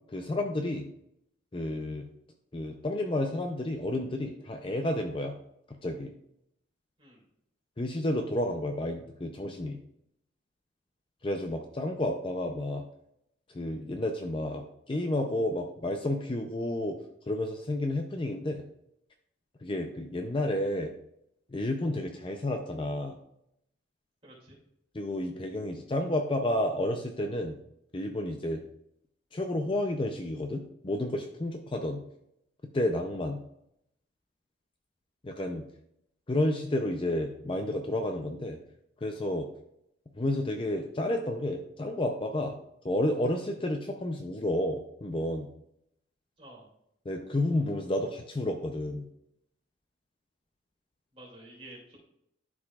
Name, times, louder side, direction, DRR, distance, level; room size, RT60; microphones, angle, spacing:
voice 1, 0.1-0.9 1.5-2.0 2.5-5.3 5.8-6.1 7.8-9.8 11.2-12.8 13.5-17.0 17.3-18.6 19.6-20.9 21.5-23.2 24.9-27.6 27.9-28.6 29.3-32.0 32.7-33.4 35.2-35.6 36.3-38.6 39.0-39.5 40.2-42.5 42.8-45.5 47.1-49.1, left 1 dB, 25° left, 4 dB, 0.5 m, -31 dB
voice 2, 24.2-24.6 46.4-46.7 51.1-52.0, right 1 dB, 30° right, -3 dB, 2.4 m, -50 dB
11.5 x 4.9 x 2.4 m, 0.76 s
head